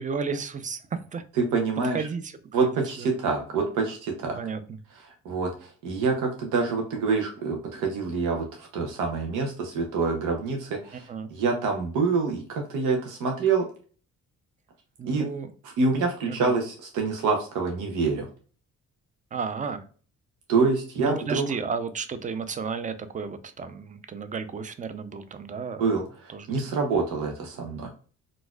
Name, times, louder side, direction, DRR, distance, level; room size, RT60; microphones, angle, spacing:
voice 1, 0.0-1.2 1.8-2.3 2.6-2.7 3.0-3.1 4.3-4.6 11.1-11.3 15.0-15.5 16.3-16.5 19.3-19.8 21.0-25.9 26.3-26.5, right 5 dB, 25° right, 11 dB, 0.5 m, -33 dB
voice 2, 1.4-2.1 2.5-4.4 5.2-13.7 15.1-15.3 15.8-18.3 20.5-21.5 25.8-27.9, right 4 dB, 85° right, 2 dB, 0.8 m, -26 dB
3.9 x 2.5 x 2.2 m, 0.41 s
cardioid pair, 90°, 30 cm